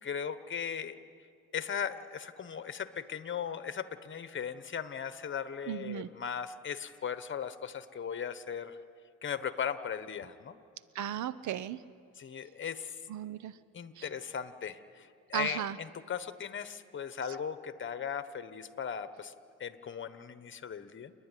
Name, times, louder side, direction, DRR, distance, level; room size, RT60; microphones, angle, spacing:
voice 1, 0.0-1.0 1.5-8.8 9.2-10.6 12.2-13.0 13.7-19.3 19.6-21.1, left 7 dB, 40° left, 12 dB, 1.1 m, -38 dB
voice 2, 5.7-6.1 10.9-11.8 13.1-13.6 14.0-14.1 15.3-15.8, right 11 dB, 70° right, 15 dB, 0.8 m, -36 dB
29.5 x 10.0 x 9.9 m, 2.3 s
cardioid pair, 90°, 30 cm